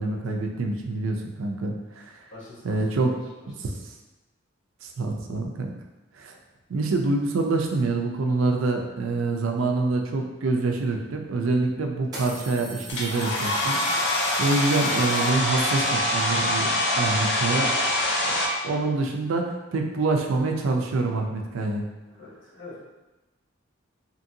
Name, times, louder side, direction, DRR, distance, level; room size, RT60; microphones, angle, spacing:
voice 1, 0.0-2.2 2.6-3.2 3.5-3.7 4.8-5.7 6.2-6.4 6.7-16.7 17.0-17.7 18.3-21.9, right 3 dB, 80° right, 2 dB, 0.4 m, -26 dB
voice 2, 2.3-3.1 17.7-17.9 22.1-22.8, left 2 dB, 75° left, -7 dB, 1.1 m, -44 dB
sound 1, 10.9-11.0 12.0-15.8, right 1 dB, 20° right, 0.7 m, -41 dB
Domestic sounds home sounds, 12.9-18.5, left 1 dB, 60° left, 0.5 m, -24 dB
2.9 x 2.5 x 2.7 m, 1.1 s
head